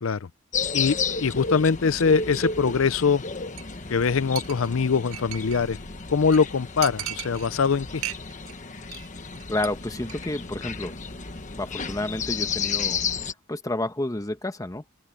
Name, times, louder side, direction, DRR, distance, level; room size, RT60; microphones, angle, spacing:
sound 1, 0.5-13.3, left 5 dB, 35° left, 1.2 m, -32 dB
voice 1, 1.2-3.2 3.9-5.8 6.1-8.0, left 5 dB, 75° left, 0.6 m, -22 dB
sound 2, 3.6-13.2, equal, 55° left, 3.5 m, -58 dB
Chink clink, 3.6-3.8 4.0-4.1 4.4-5.7 6.0-6.1 6.3-6.4 6.8-7.7 8.0-8.5 8.8-9.1 9.3-9.7 10.0-10.1, right 16 dB, 70° right, 0.4 m, -36 dB
voice 2, 9.5-10.9 11.5-13.0 13.5-14.8, left 1 dB, 15° left, 1.2 m, -30 dB
open air
head